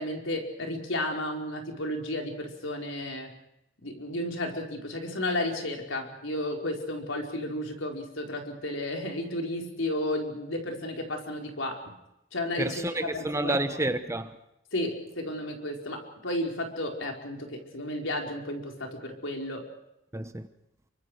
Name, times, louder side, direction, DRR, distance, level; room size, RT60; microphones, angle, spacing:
voice 1, 0.0-3.3 3.8-11.9 12.3-12.8 13.1-13.8 14.7-19.7, left 1 dB, 80° left, 4.7 m, -33 dB
voice 2, 12.6-14.4 20.1-20.5, right 2 dB, 15° right, 1.1 m, -30 dB
28.5 x 24.5 x 4.9 m
head